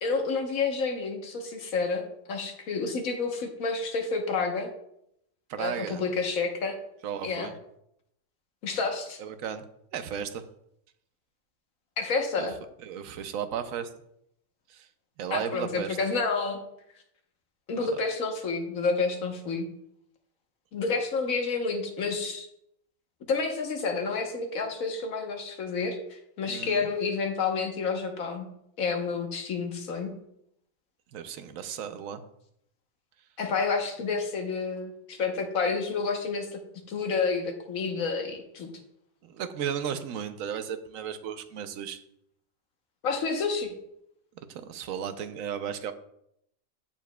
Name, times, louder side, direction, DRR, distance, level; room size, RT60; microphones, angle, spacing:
voice 1, 0.0-4.7 5.6-6.8 7.2-7.5 8.6-9.2 12.0-12.5 15.3-16.6 17.7-19.7 20.7-22.5 23.3-28.5 28.8-30.1 33.4-36.6 36.9-38.7 43.0-43.8, left 4 dB, 90° left, 4 dB, 1.5 m, -29 dB
voice 2, 5.5-6.0 7.0-7.5 9.2-9.6 9.9-10.4 12.4-12.5 12.8-13.9 14.7-14.9 15.2-16.0 17.8-17.9 26.5-26.9 31.1-32.2 39.2-42.0 44.5-45.9, right 8 dB, 80° right, 10 dB, 1.0 m, -34 dB
14.5 x 4.8 x 2.2 m, 0.76 s
omnidirectional pair, 1.4 m